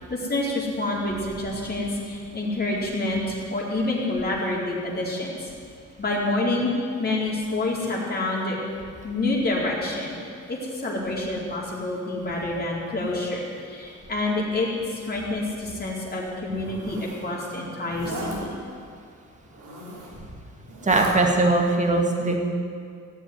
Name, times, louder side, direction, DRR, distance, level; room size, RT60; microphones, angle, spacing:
voice 1, 0.0-5.5 6.0-8.6 9.0-10.2 10.5-18.6 20.1-20.2, left 2 dB, 30° left, -4 dB, 4.3 m, -27 dB
Zipper (clothing), 16.5-17.2 17.9-18.4 19.5-20.2 20.6-21.1, right 2 dB, 85° right, 4.0 m, -36 dB
voice 2, 20.8-22.4, right 2 dB, 25° right, 2 dB, 2.4 m, -20 dB
16.5 x 7.6 x 9.4 m, 2.2 s
cardioid pair, 90°, 30 cm